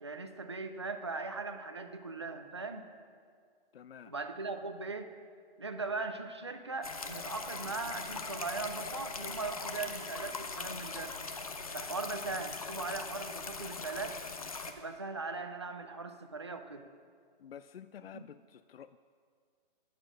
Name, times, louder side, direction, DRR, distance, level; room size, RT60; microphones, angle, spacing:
voice 1, 0.0-2.9 4.1-5.1 5.6-11.2 11.7-14.2 14.7-16.8 18.1-18.2, right 3 dB, 30° right, 6 dB, 0.4 m, -39 dB
voice 2, 3.7-4.1 17.4-19.0, left 9 dB, 85° left, 13 dB, 0.5 m, -50 dB
sound 1, 6.8-14.7, left 4 dB, 40° left, 0.8 m, -41 dB
11.0 x 9.9 x 6.2 m, 2.1 s
hypercardioid pair, 180°, 29 cm